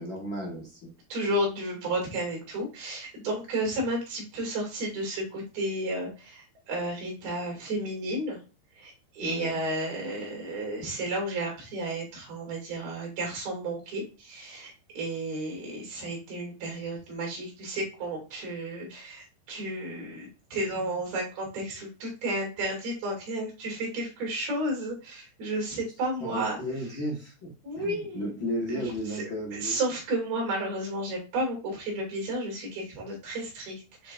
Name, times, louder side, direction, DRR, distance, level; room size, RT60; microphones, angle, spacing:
voice 1, 0.0-0.9 9.2-9.6 26.2-29.8, equal, 45° left, -3 dB, 1.7 m, -34 dB
voice 2, 1.1-8.4 8.7-26.6 27.6-28.3 28.7-28.8 29.1-34.1, right 1 dB, 90° right, -1 dB, 4.6 m, -32 dB
9.7 x 4.0 x 2.5 m, 0.33 s
omnidirectional pair, 4.2 m